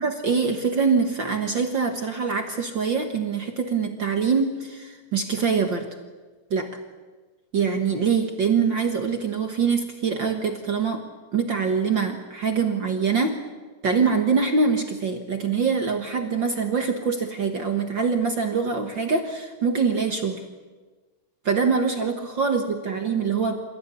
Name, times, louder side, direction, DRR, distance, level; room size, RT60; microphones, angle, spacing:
voice 1, 0.0-5.9 6.5-6.7 7.5-11.0 11.3-13.4 13.8-20.4 21.4-23.6, right 5 dB, 45° right, 5 dB, 1.7 m, -24 dB
28.0 x 16.0 x 9.8 m, 1.3 s
omnidirectional pair, 3.8 m